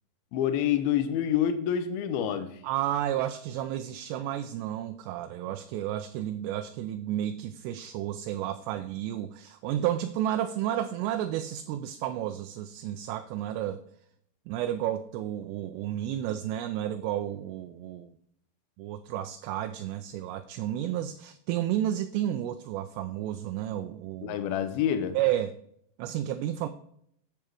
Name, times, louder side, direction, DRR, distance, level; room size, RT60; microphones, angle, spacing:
voice 1, 0.3-2.6 24.2-25.2, left 9 dB, 75° left, 2.3 m, -27 dB
voice 2, 2.6-13.8 14.5-18.1 18.8-24.4 25.1-25.6 26.0-26.7, right 12 dB, 85° right, 2.6 m, -31 dB
8.9 x 6.9 x 4.7 m
omnidirectional pair, 5.1 m